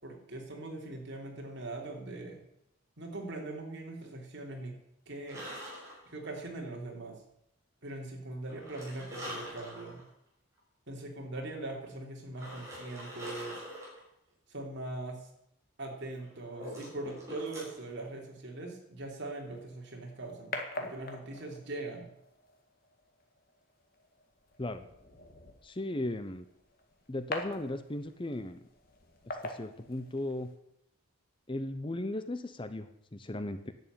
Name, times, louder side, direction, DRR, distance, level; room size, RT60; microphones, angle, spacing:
voice 1, 0.0-2.4 3.0-4.8 5.0-5.4 6.0-7.2 7.8-10.0 10.9-13.6 14.5-15.3 15.8-22.1, right 2 dB, 55° right, 1 dB, 3.3 m, -41 dB
sound 1, 5.3-6.4 8.5-10.0 10.6-10.7 12.3-14.0 16.1-17.8, equal, 15° right, 5.7 m, -44 dB
sound 2, 19.5-30.5, left 2 dB, 45° left, 1.9 m, -45 dB
voice 2, 25.6-26.4 27.1-28.6 29.4-30.5 31.5-33.7, left 1 dB, 25° left, 10 dB, 0.7 m, -36 dB
11.0 x 8.3 x 8.9 m, 0.77 s
head